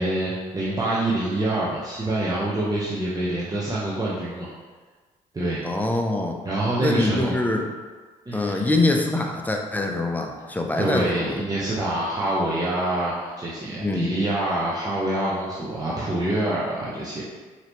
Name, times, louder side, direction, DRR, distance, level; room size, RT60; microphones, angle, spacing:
voice 1, 0.0-4.5 5.3-5.6 6.4-7.4 8.3-8.6 10.8-17.2, right 1 dB, 25° right, -8 dB, 0.9 m, -26 dB
voice 2, 5.6-6.4 6.8-7.7 8.3-11.3 13.8-14.1, left 2 dB, 10° left, 2 dB, 0.6 m, -24 dB
4.9 x 2.9 x 3.1 m, 1.4 s
hypercardioid pair, 55°, 16 cm